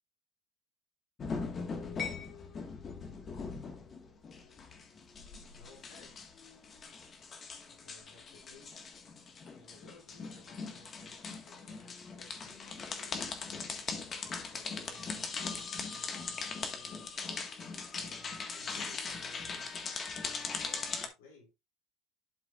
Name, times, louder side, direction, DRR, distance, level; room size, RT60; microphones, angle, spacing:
sound 1, 1.2-21.1, left 4 dB, 35° left, 1.6 m, -40 dB
voice 1, 5.5-6.2 7.7-8.7 9.4-13.3 14.5-17.1 17.9-21.5, left 2 dB, 90° left, 4.4 m, -59 dB
12.0 x 4.7 x 2.5 m
supercardioid pair, 110°, 0 cm